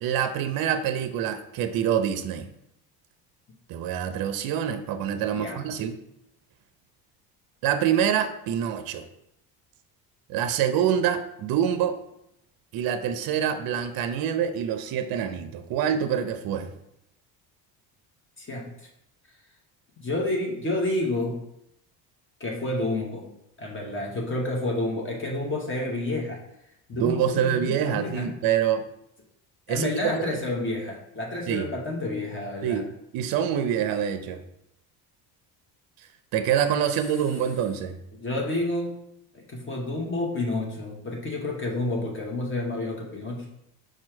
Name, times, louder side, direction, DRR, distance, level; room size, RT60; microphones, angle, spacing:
voice 1, 0.0-2.5 3.7-6.0 7.6-9.0 10.3-12.0 12.7-16.7 26.9-28.9 29.7-30.3 31.5-31.7 32.6-32.9 33.1-34.4 36.3-38.0, right 9 dB, 55° right, 9 dB, 0.5 m, -26 dB
voice 2, 5.1-5.8 18.4-18.7 20.0-21.4 22.4-23.3 23.6-26.4 26.9-28.4 29.7-32.8 38.1-39.0 39.3-43.5, left 2 dB, 25° left, -1 dB, 0.9 m, -29 dB
4.4 x 2.3 x 4.4 m, 0.79 s
supercardioid pair, 80°, 45 cm